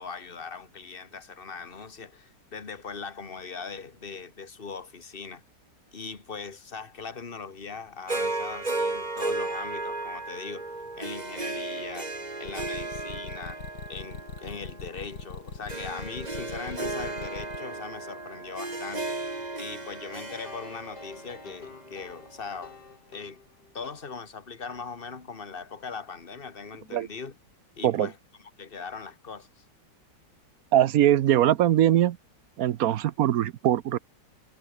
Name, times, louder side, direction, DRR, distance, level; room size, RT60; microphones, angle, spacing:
voice 1, 0.0-5.4 5.9-10.7 10.9-13.6 13.9-19.2 19.6-22.8 23.1-23.4 23.7-27.3 27.8-28.2 28.6-29.6, left 5 dB, 30° left, 2.2 m, -40 dB
Harp, 8.1-22.5, right 2 dB, 20° right, 2.4 m, -35 dB
sound 1, 12.5-17.6, left 5 dB, 85° left, 3.6 m, -40 dB
sound 2, 20.2-24.0, left 5 dB, 65° left, 3.2 m, -49 dB
voice 2, 30.7-32.2 32.6-34.0, right 12 dB, 65° right, 1.0 m, -21 dB
omnidirectional pair, 1.9 m